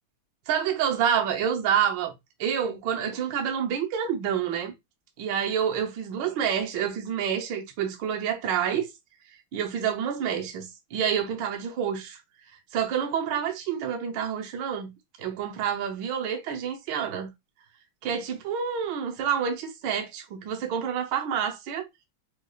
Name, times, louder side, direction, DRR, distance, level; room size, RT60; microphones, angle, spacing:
voice 1, 0.5-2.1 2.4-4.7 5.2-8.9 9.5-12.2 12.7-14.9 15.2-17.3 18.0-21.9, right 8 dB, 70° right, 1.3 m, -28 dB
4.9 x 2.3 x 2.3 m
omnidirectional pair, 2.3 m